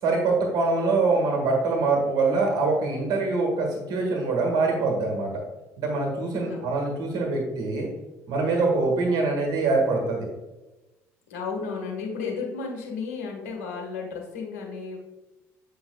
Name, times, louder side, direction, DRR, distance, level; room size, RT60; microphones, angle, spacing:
voice 1, 0.0-5.3 5.8-7.9 8.3-10.3, right 3 dB, 55° right, 0 dB, 1.6 m, -24 dB
voice 2, 6.3-6.7 11.3-15.0, left 5 dB, 80° left, 0 dB, 1.3 m, -33 dB
8.6 x 5.5 x 2.3 m, 1.0 s
hypercardioid pair, 55°, 8 cm